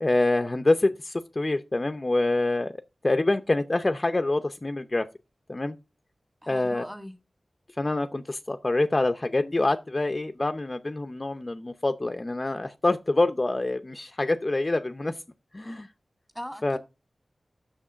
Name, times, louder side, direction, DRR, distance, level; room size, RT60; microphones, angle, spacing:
voice 1, 0.0-2.7 3.0-5.0 5.5-5.7 6.5-6.8 7.8-15.1 15.5-15.9 16.6-16.8, left 2 dB, 35° left, 0.6 m, -26 dB
voice 2, 6.4-7.1 16.3-16.8, equal, 5° right, 1.7 m, -39 dB
6.5 x 6.2 x 5.5 m
wide cardioid pair, 70°, 0 cm